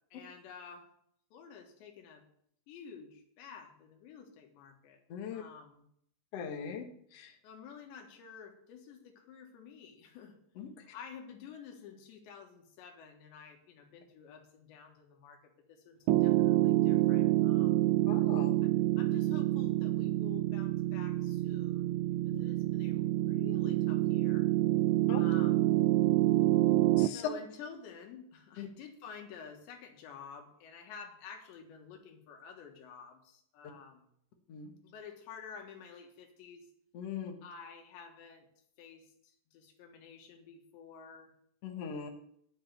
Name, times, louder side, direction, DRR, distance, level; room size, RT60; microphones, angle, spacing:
voice 1, 0.1-0.9 1.3-2.2 2.7-5.0 5.3-5.8 7.4-10.4 10.9-17.9 19.0-21.9 22.3-24.5 25.2-25.8 27.1-34.1 34.8-36.7 37.4-38.5 38.8-41.3, left 6 dB, 85° left, 3 dB, 3.9 m, -50 dB
voice 2, 5.1-5.4 6.3-6.8 7.1-7.3 10.6-10.7 18.1-18.6 22.3-22.4 25.1-25.2 27.0-27.2 28.6-28.7 34.5-34.7 36.9-37.4 41.6-42.1, left 6 dB, 60° left, 4 dB, 1.7 m, -40 dB
Piano, 16.1-27.1, right 16 dB, 80° right, 2.5 m, -27 dB
10.0 x 7.3 x 6.9 m, 0.69 s
omnidirectional pair, 4.9 m